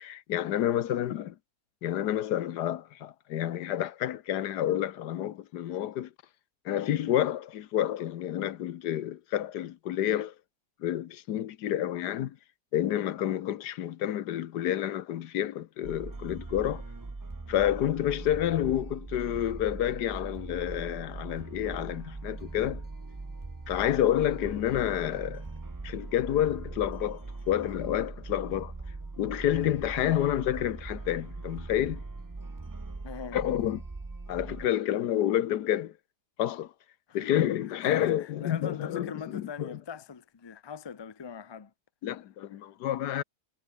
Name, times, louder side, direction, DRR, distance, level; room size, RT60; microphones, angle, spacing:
voice 1, 0.0-1.3 1.8-6.1 6.6-10.3 10.8-12.4 12.7-16.8 17.5-22.8 23.7-25.4 25.8-28.7 29.2-32.0 33.3-33.8 34.3-35.9 36.4-36.7 37.1-39.8 42.0-43.2, left 11 dB, 85° left, 1.4 m, -29 dB
sound 1, 15.8-34.7, right 3 dB, 20° right, 0.5 m, -41 dB
voice 2, 33.0-33.4 37.1-37.3 37.8-41.7, left 6 dB, 40° left, 0.3 m, -41 dB
omnidirectional pair, 1.7 m